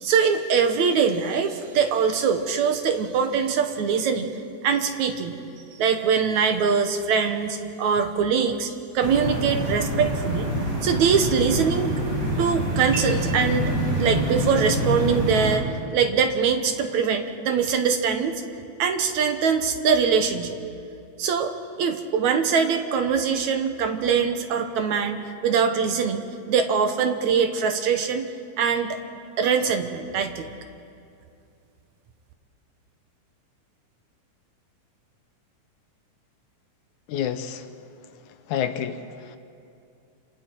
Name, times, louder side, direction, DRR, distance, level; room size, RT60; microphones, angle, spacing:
voice 1, 0.0-4.4 4.6-5.3 5.8-10.5 10.8-12.0 12.4-18.4 18.8-20.6 21.2-25.2 25.4-28.3 28.6-29.0 29.4-30.5, right 6 dB, 70° right, 7 dB, 2.3 m, -23 dB
sound 1, 9.0-15.6, right 1 dB, 30° right, 4.8 m, -26 dB
voice 2, 37.1-37.7 38.3-39.4, left 9 dB, 75° left, 9 dB, 2.1 m, -29 dB
28.5 x 27.0 x 4.6 m, 2.5 s
omnidirectional pair, 3.7 m